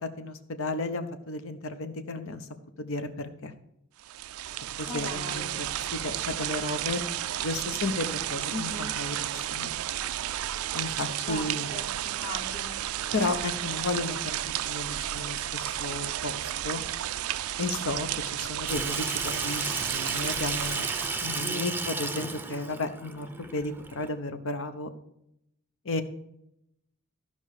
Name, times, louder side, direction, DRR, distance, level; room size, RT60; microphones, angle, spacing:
voice 1, 0.0-2.5 2.8-3.5 4.8-7.0 7.4-9.7 10.7-11.8 13.1-14.4 14.6-16.8 17.6-20.9 21.2-24.9 25.8-26.0, left 2 dB, 65° left, 9 dB, 0.9 m, -33 dB
sound 1, 4.0-21.6, right 12 dB, 75° right, 0.4 m, -33 dB
voice 2, 4.9-5.6 8.5-8.9 11.3-11.4 11.7-12.8 21.4-21.7, left 2 dB, 30° left, 3 dB, 1.1 m, -38 dB
Water tap faucet / Sink (filling or washing), 18.7-24.1, right 3 dB, 10° right, 0.6 m, -33 dB
14.0 x 5.5 x 4.9 m, 0.79 s
head